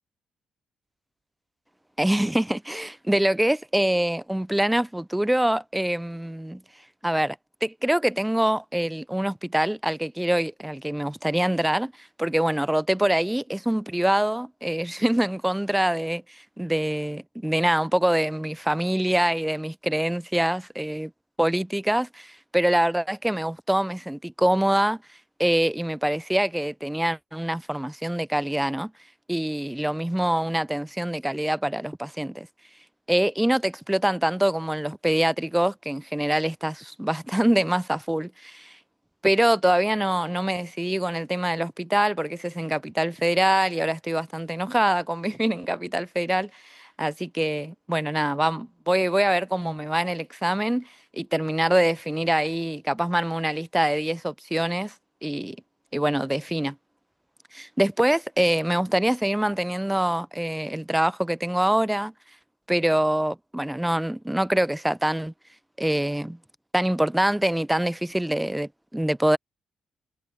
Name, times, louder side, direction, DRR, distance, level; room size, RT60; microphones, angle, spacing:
voice 1, 2.0-6.6 7.0-7.4 7.6-21.1 21.4-25.0 25.4-28.9 29.3-32.5 33.1-38.8 39.2-50.9 51.2-54.9 55.2-55.6 55.9-56.7 57.5-62.1 62.7-65.3 65.8-66.4 66.7-69.4, right 1 dB, 5° right, 0.4 m, -24 dB
cardioid pair, 90°, 0 cm